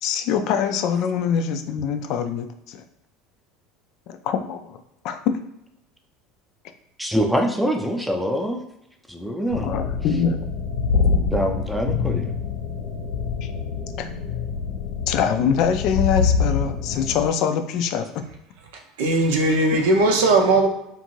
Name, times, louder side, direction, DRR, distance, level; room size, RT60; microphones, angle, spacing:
voice 1, 0.0-2.8 4.2-4.8 5.0-5.4 9.6-10.4 13.4-13.5 14.0-14.1 15.1-18.2 19.7-19.8, left 7 dB, 60° left, 0.3 m, -24 dB
voice 2, 7.0-8.6 9.1-9.7 11.3-12.3, equal, ahead, 0.5 m, -24 dB
sound 1, 9.5-17.3, left 5 dB, 80° left, 0.8 m, -25 dB
voice 3, 19.0-20.7, right 2 dB, 75° right, 0.5 m, -18 dB
2.6 x 2.4 x 3.0 m
hypercardioid pair, 90°, 0 cm